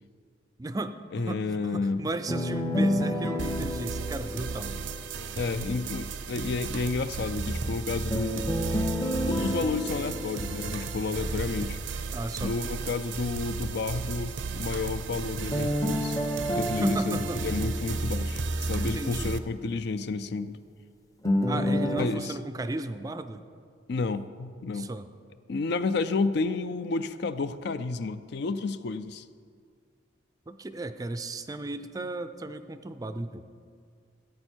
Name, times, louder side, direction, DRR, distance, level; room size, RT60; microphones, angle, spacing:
voice 1, 0.6-4.8 12.1-12.6 16.7-17.4 18.8-19.3 21.5-23.4 24.7-25.1 30.5-33.4, right 2 dB, 20° right, 10 dB, 0.4 m, -35 dB
voice 2, 1.1-2.0 5.4-8.7 9.3-11.8 12.4-16.2 16.5-20.6 22.0-22.4 23.9-24.9 25.5-29.2, left 4 dB, 60° left, 13 dB, 0.4 m, -31 dB
sound 1, 2.3-5.4 8.1-11.4 15.5-18.6 21.2-22.0, equal, 20° left, 0.6 m, -30 dB
sound 2, 3.4-19.4, right 4 dB, 80° right, 0.6 m, -34 dB
15.0 x 8.6 x 4.5 m, 2.2 s
head